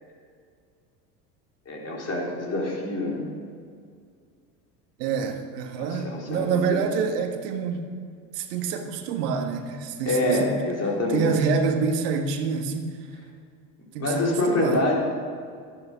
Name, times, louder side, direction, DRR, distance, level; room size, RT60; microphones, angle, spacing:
voice 1, 1.7-3.2 5.8-6.8 10.0-11.4 14.0-15.0, left 2 dB, 30° left, -2 dB, 4.3 m, -26 dB
voice 2, 5.0-7.8 8.3-10.5 11.1-12.9 13.9-14.8, right 5 dB, 75° right, 5 dB, 1.6 m, -27 dB
13.5 x 11.0 x 6.2 m, 2.1 s
hypercardioid pair, 85°, 49 cm